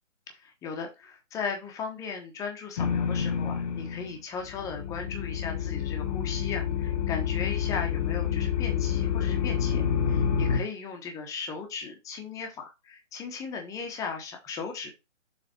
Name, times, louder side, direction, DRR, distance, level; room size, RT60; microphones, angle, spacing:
voice 1, 0.3-14.9, left 5 dB, 10° left, 3 dB, 1.1 m, -37 dB
sound 1, 2.8-4.2 4.4-10.6, left 7 dB, 30° left, 1.2 m, -28 dB
7.0 x 4.2 x 4.3 m, 0.24 s
figure-of-eight pair, 145°, 38 cm